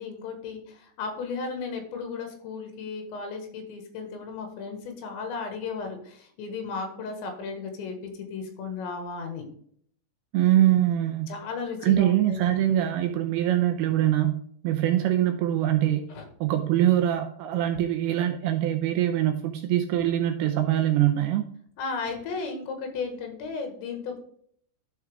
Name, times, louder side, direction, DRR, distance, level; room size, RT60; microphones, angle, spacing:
voice 1, 0.0-9.5 11.3-12.6 16.1-16.2 21.8-24.2, left 4 dB, 85° left, 4 dB, 3.9 m, -35 dB
voice 2, 10.3-11.3 11.8-14.3 14.6-16.1 16.4-21.5, right 12 dB, 80° right, 5 dB, 2.4 m, -23 dB
12.5 x 4.8 x 3.5 m, 0.62 s
omnidirectional pair, 5.1 m